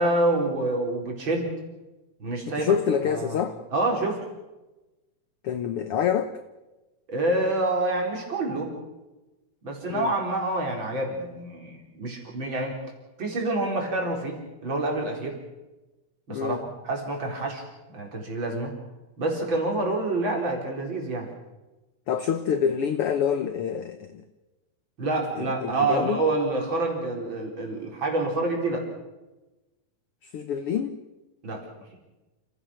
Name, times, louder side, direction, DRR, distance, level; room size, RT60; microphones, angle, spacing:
voice 1, 0.0-1.5 2.2-2.7 3.0-3.4 3.7-4.2 7.1-8.7 9.6-12.8 13.2-15.4 16.3-18.7 19.2-21.3 25.0-28.9 31.4-31.6, right 2 dB, 35° right, 1 dB, 5.0 m, -27 dB
voice 2, 2.4-3.6 5.4-6.3 9.9-10.1 16.3-16.6 22.1-24.2 25.4-26.2 30.2-31.0, left 8 dB, 65° left, 9 dB, 1.4 m, -27 dB
28.5 x 16.5 x 6.4 m, 1.1 s
omnidirectional pair, 3.7 m